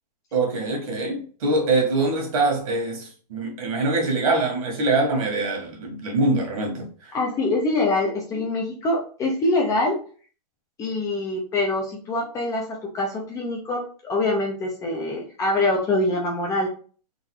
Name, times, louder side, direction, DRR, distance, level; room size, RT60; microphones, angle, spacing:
voice 1, 0.3-7.2, right 2 dB, 55° right, 1.7 m, -24 dB
voice 2, 7.1-10.0 10.8-16.7, left 2 dB, 15° left, 0.7 m, -24 dB
3.8 x 2.6 x 4.6 m
hypercardioid pair, 160°, 21 cm